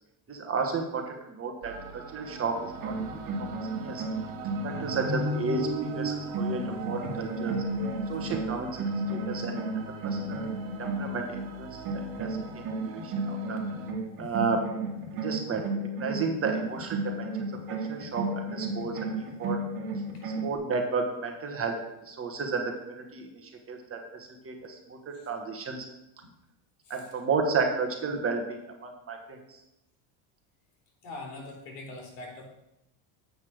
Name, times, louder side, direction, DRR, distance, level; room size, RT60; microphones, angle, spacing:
voice 1, 0.3-3.5 3.8-4.0 4.6-7.6 8.1-10.5 10.8-13.6 14.2-14.7 15.1-15.7 16.0-17.3 17.7-19.6 20.2-21.7 22.0-25.9 26.9-29.6, right 4 dB, 25° right, 3 dB, 1.3 m, -33 dB
sound 1, 1.6-13.9, right 6 dB, 65° right, 1.9 m, -43 dB
sound 2, 2.7-11.5 11.8-20.5, right 1 dB, 45° right, 1.9 m, -33 dB
voice 2, 6.5-6.8 7.4-7.8 8.1-8.2 25.1-25.3 26.8-27.0 28.1-28.2 31.0-32.4, left 2 dB, 75° left, 0 dB, 3.4 m, -44 dB
8.1 x 5.6 x 6.2 m, 0.87 s
cardioid pair, 140°, 49 cm